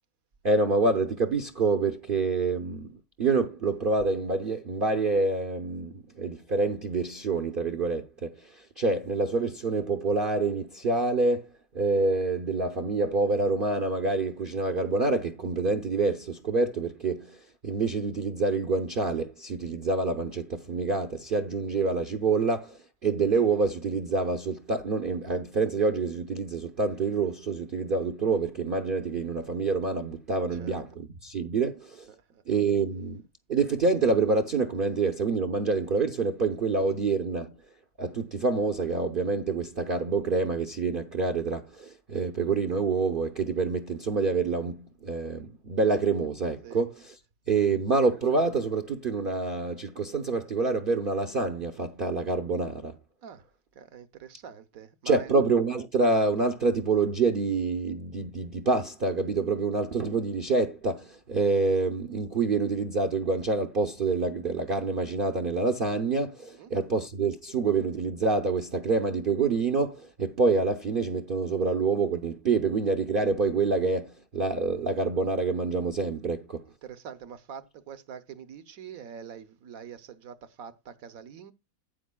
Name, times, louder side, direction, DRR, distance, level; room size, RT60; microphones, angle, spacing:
voice 1, 0.4-2.9 3.2-11.5 11.7-32.1 32.5-33.2 33.5-37.5 38.0-47.2 47.5-53.0 55.0-76.6, right 3 dB, 45° right, 0.7 m, -27 dB
voice 2, 32.1-32.4 46.6-46.8 53.2-53.4 53.7-55.3 66.6-66.7 76.8-81.5, right 7 dB, 65° right, 1.2 m, -44 dB
12.5 x 8.9 x 2.3 m
omnidirectional pair, 1.8 m